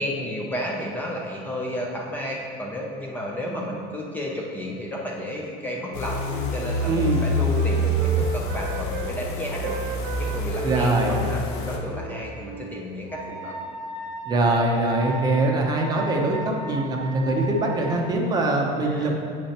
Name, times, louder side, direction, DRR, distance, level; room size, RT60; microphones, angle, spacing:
voice 1, 0.0-6.2 6.5-9.8 10.2-13.6 18.8-19.1, equal, 10° left, -2 dB, 0.6 m, -32 dB
Wind instrument woodwind instrument, 5.8-9.2 9.5-13.4, right 8 dB, 60° right, 0.4 m, -36 dB
sound 1, 5.9-11.8, equal, 80° left, 0.9 m, -26 dB
voice 2, 6.8-7.3 10.6-11.1 14.3-19.1, right 2 dB, 25° right, 1 dB, 0.7 m, -23 dB
Wind instrument woodwind instrument 2, 13.1-18.0, right 1 dB, 5° right, 1.2 m, -36 dB
8.5 x 6.8 x 2.9 m, 2.5 s
cardioid pair, 165°, 17 cm